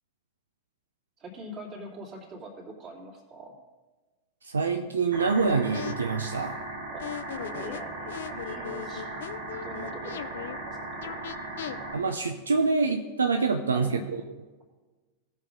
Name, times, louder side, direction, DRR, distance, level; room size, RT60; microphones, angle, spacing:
voice 1, 1.2-3.6 6.9-7.0 7.3-9.0 9.5-11.4 13.7-14.1, right 1 dB, 35° right, 0 dB, 3.1 m, -44 dB
voice 2, 4.4-6.6 11.9-14.2, right 4 dB, 75° right, 6 dB, 0.6 m, -26 dB
sound 1, 5.1-11.9, right 2 dB, 55° right, 1.7 m, -38 dB
sound 2, 5.4-5.9 7.0-10.6 11.0-11.8, left 10 dB, 60° left, 0.5 m, -38 dB
18.0 x 6.4 x 3.9 m, 1.3 s
figure-of-eight pair, 90°, 0 cm